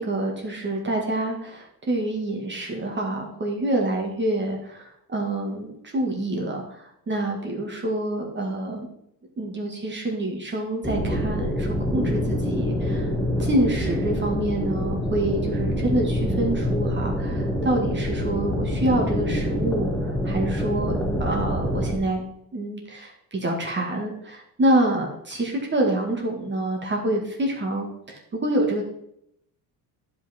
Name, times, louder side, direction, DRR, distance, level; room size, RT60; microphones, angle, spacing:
voice 1, 0.0-8.9 9.4-13.1 13.4-22.2 22.5-28.8, right 1 dB, 25° right, 0 dB, 2.0 m, -27 dB
sound 1, 10.8-22.0, equal, 5° left, 1.8 m, -26 dB
11.0 x 5.5 x 4.4 m, 0.75 s
cardioid pair, 110°, 40 cm